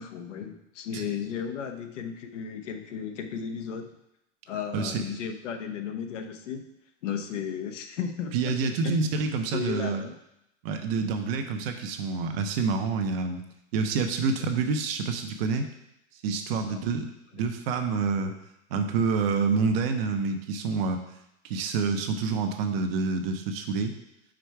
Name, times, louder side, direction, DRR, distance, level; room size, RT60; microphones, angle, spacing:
voice 1, 0.0-3.9 4.5-6.7 7.0-8.5 8.8-8.9 9.5-10.2 16.6-16.8, left 7 dB, 75° left, 6 dB, 0.9 m, -34 dB
voice 2, 4.7-5.0 8.3-10.0 10.6-13.4 13.7-15.7 16.2-18.3 18.7-21.0 21.4-23.9, right 4 dB, 50° right, 6 dB, 0.8 m, -27 dB
5.0 x 4.6 x 4.6 m, 0.82 s
hypercardioid pair, 140°, 37 cm